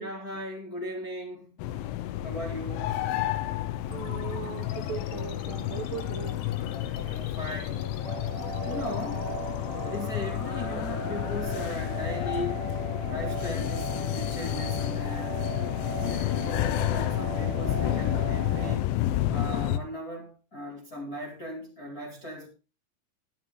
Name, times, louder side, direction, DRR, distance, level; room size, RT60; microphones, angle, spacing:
voice 1, 0.0-1.6 2.2-3.2 7.0-7.9 8.6-9.3 9.8-12.6 13.1-15.4 16.0-18.9 19.3-22.5, equal, 30° left, 1.7 m, -38 dB
sound 1, 1.6-19.8, left 13 dB, 85° left, 3.3 m, -30 dB
sound 2, 3.9-14.9, left 7 dB, 65° left, 3.4 m, -45 dB
voice 2, 3.9-6.4, right 8 dB, 75° right, 2.1 m, -38 dB
sound 3, 8.0-18.7, right 7 dB, 40° right, 1.5 m, -39 dB
13.5 x 11.5 x 3.8 m
omnidirectional pair, 5.4 m